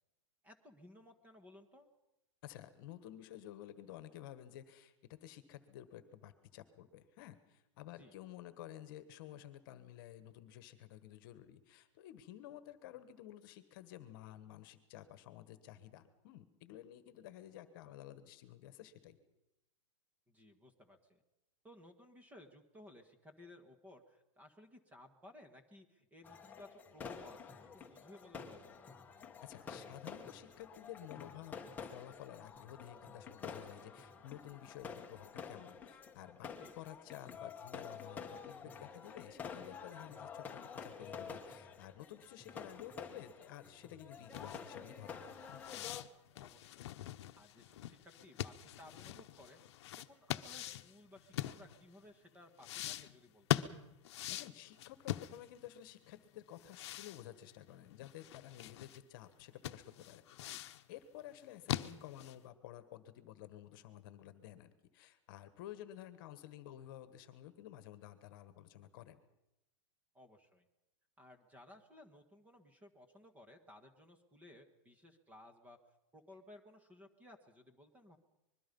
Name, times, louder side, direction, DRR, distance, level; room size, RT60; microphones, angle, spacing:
voice 1, 0.4-1.9 8.0-8.1 20.3-21.2 21.6-28.9 36.6-36.7 46.3-46.9 47.4-53.6 60.4-60.6 70.1-70.6 71.2-75.8 76.1-78.2, left 1 dB, 10° right, 7 dB, 1.5 m, -59 dB
voice 2, 2.4-19.2 29.4-31.6 31.9-36.5 36.7-45.4 54.3-60.2 60.9-69.2, left 12 dB, 45° left, 12 dB, 1.5 m, -52 dB
sound 1, 26.2-46.0, left 6 dB, 10° left, 1.3 m, -49 dB
sound 2, 44.3-52.0 52.6-55.8 56.0-56.1 56.6-59.0 59.3-59.4 59.6-60.8 61.3-62.4, left 13 dB, 60° left, 1.0 m, -42 dB
25.0 x 21.5 x 5.5 m, 0.93 s
supercardioid pair, 170°, 16 cm